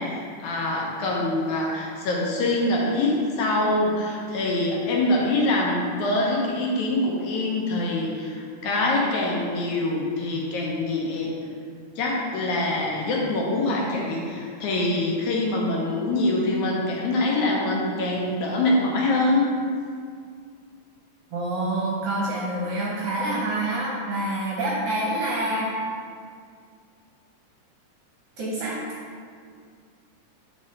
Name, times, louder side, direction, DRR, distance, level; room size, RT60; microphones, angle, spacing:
voice 1, 0.0-11.3 12.0-19.4, left 2 dB, 75° left, -2 dB, 2.3 m, -24 dB
voice 2, 21.3-25.7 28.4-28.8, right 1 dB, 65° right, -5 dB, 1.5 m, -27 dB
8.1 x 5.6 x 3.2 m, 2.2 s
omnidirectional pair, 3.6 m